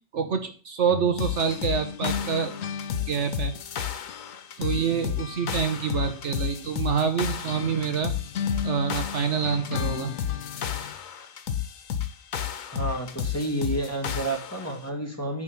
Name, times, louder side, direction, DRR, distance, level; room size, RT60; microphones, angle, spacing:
voice 1, 0.1-2.5 3.1-3.5 4.6-8.1 8.6-10.1, right 6 dB, 65° right, 6 dB, 1.2 m, -26 dB
sound 1, 0.9-4.4 4.6-11.0, left 7 dB, 65° left, 0.8 m, -37 dB
sound 2, 1.2-14.7, left 9 dB, 85° left, 1.3 m, -32 dB
voice 2, 12.7-15.4, right 2 dB, 10° left, 0 dB, 2.0 m, -30 dB
9.6 x 3.6 x 7.0 m, 0.38 s
omnidirectional pair, 1.4 m